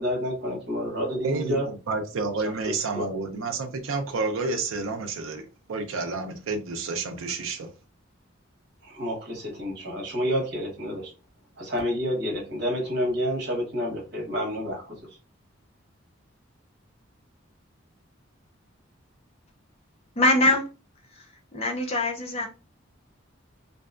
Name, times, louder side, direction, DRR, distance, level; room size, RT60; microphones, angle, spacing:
voice 1, 0.0-1.7 2.6-3.0 8.8-11.1 11.6-14.9, equal, 55° right, 1.0 m, -29 dB
voice 2, 1.2-7.7, right 3 dB, 80° right, 0.5 m, -30 dB
voice 3, 20.2-20.7 21.1-21.3 21.5-22.5, left 2 dB, 30° left, 0.5 m, -23 dB
2.6 x 2.3 x 2.4 m
head